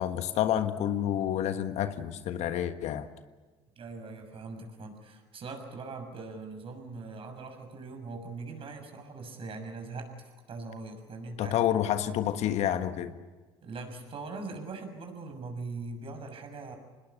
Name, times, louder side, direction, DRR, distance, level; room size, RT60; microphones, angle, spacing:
voice 1, 0.0-3.1 11.4-13.1, left 11 dB, 60° left, 10 dB, 1.5 m, -29 dB
voice 2, 3.8-11.9 13.6-16.8, right 3 dB, 45° right, 5 dB, 6.6 m, -41 dB
26.0 x 20.5 x 8.5 m, 1.3 s
hypercardioid pair, 65°, 13 cm